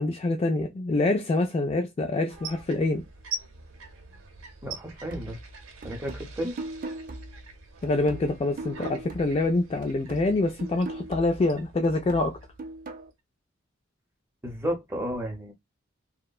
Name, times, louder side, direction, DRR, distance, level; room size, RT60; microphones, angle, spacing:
voice 1, 0.0-3.0 7.8-12.4, left 2 dB, 30° left, 0.3 m, -26 dB
sound 1, 2.3-13.1, right 3 dB, 90° right, 0.6 m, -44 dB
voice 2, 4.6-5.4 5.8-6.6 14.4-15.5, equal, 15° right, 0.7 m, -32 dB
sound 2, 5.1-9.5 9.8-13.1, right 2 dB, 45° right, 0.5 m, -41 dB
2.7 x 2.1 x 2.2 m
head